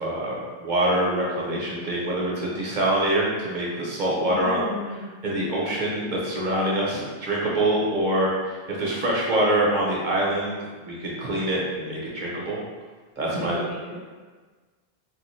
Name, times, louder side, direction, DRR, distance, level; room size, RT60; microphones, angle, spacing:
voice 1, 0.0-4.6 5.2-8.3 8.7-10.6 10.8-12.6 13.2-13.7, right 1 dB, 55° right, -4 dB, 0.7 m, -25 dB
voice 2, 4.2-5.1 13.3-14.0, left 2 dB, 60° left, -6 dB, 0.9 m, -35 dB
3.2 x 2.4 x 3.1 m, 1.4 s
omnidirectional pair, 1.0 m